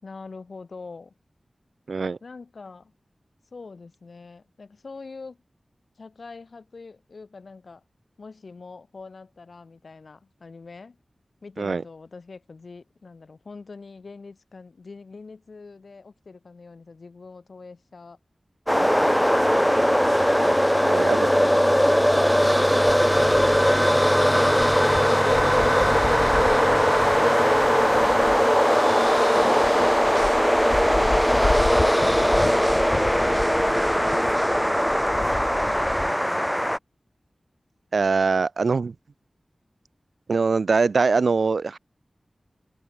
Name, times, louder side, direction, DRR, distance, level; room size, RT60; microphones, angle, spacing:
voice 1, 0.0-1.1 2.2-2.9 3.5-5.4 6.0-7.8 8.2-11.0 11.4-18.2 18.7-19.8 21.2-26.9 27.9-28.4 29.6-30.5 31.0-36.7, left 4 dB, 70° left, 5.5 m, -43 dB
voice 2, 1.9-2.2 11.6-11.8 20.9-21.2 37.9-38.9 40.3-41.8, right 4 dB, 80° right, 0.6 m, -22 dB
sound 1, 18.7-36.8, equal, ahead, 0.4 m, -20 dB
sound 2, 24.8-36.1, left 2 dB, 45° left, 1.3 m, -34 dB
wide cardioid pair, 80°, 0 cm